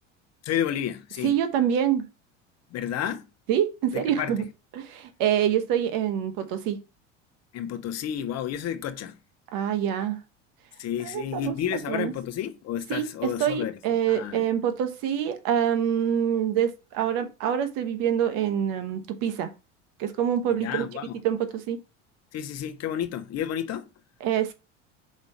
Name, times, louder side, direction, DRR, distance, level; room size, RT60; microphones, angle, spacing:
voice 1, 0.4-1.4 2.7-3.3 3.9-4.5 7.5-9.2 10.8-13.8 14.1-14.4 20.6-21.2 22.3-23.9, left 10 dB, 45° left, 1.0 m, -31 dB
voice 2, 1.2-2.1 3.5-4.4 4.7-6.8 9.5-10.2 11.0-12.1 12.9-19.5 20.0-20.9 21.2-21.8 24.2-24.5, right 9 dB, 60° right, 1.3 m, -26 dB
5.3 x 3.6 x 5.6 m
hypercardioid pair, 85°, 37 cm